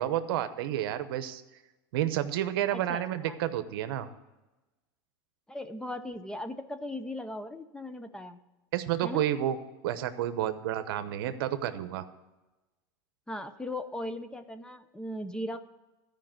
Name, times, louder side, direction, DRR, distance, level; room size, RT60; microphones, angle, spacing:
voice 1, 0.0-1.4 1.9-4.1 8.7-9.6 9.8-12.0, right 12 dB, 70° right, 11 dB, 0.9 m, -30 dB
voice 2, 2.7-3.4 5.5-8.4 9.0-9.3 13.3-15.6, left 1 dB, 5° left, 10 dB, 0.5 m, -38 dB
13.0 x 5.2 x 7.6 m, 1.1 s
supercardioid pair, 130°, 12 cm